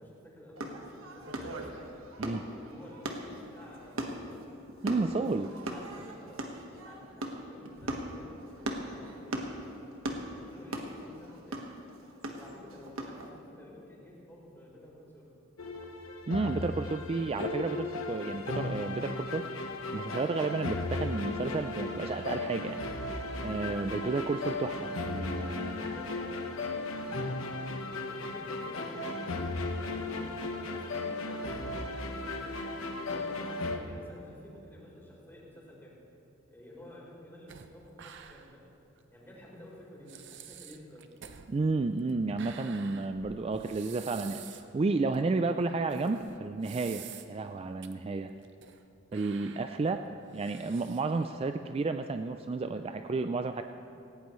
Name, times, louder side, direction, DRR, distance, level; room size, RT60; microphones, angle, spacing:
voice 1, 0.0-1.9 2.4-4.4 5.5-9.5 10.1-11.6 12.4-15.3 25.7-27.6 28.1-32.6 33.1-36.0 36.5-38.6 39.1-41.1 49.5-49.6, left 1 dB, 10° left, -5 dB, 3.9 m, -51 dB
sound 1, 0.6-13.3, right 1 dB, 90° right, 1.4 m, -39 dB
voice 2, 4.8-5.5 16.3-19.5 19.9-22.8 23.4-25.9 41.5-48.3 49.1-53.6, right 3 dB, 30° right, 7 dB, 0.3 m, -32 dB
sound 2, 15.6-33.8, left 2 dB, 85° left, 1.1 m, -36 dB
sound 3, 37.5-38.7 39.0-39.1 39.7-39.8 40.1-44.7 45.1-45.2 45.9-47.5 47.8-47.9 48.4-48.8 49.1-51.3, right 8 dB, 60° right, 0.7 m, -49 dB
17.5 x 17.0 x 3.1 m, 2.8 s
head